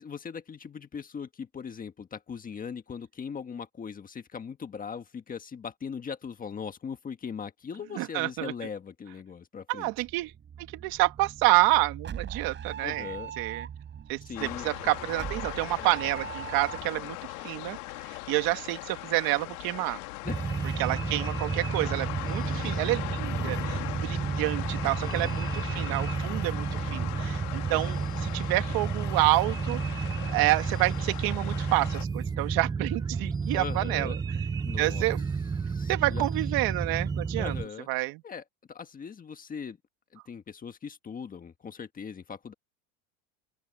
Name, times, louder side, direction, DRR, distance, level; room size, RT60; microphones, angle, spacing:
voice 1, 0.0-9.9 12.8-13.3 14.2-14.7 20.2-20.4 25.0-25.7 33.5-34.2 34.6-35.1 35.6-36.3 37.4-37.9 38.2-39.8 40.1-42.5, left 6 dB, 20° left, 1.5 m, -40 dB
voice 2, 8.0-8.5 9.7-10.3 10.7-13.1 13.4-13.7 14.1-17.2 17.4-20.0 20.8-30.0 30.3-34.1 34.8-35.2 35.9-37.6 37.9-38.2, right 19 dB, 50° right, 1.9 m, -28 dB
sound 1, 10.0-16.9, right 8 dB, 25° right, 6.7 m, -41 dB
sound 2, 14.4-32.1, left 22 dB, 85° left, 2.6 m, -39 dB
sound 3, 20.2-37.7, right 5 dB, 10° right, 0.6 m, -31 dB
open air
supercardioid pair, 150°, 44 cm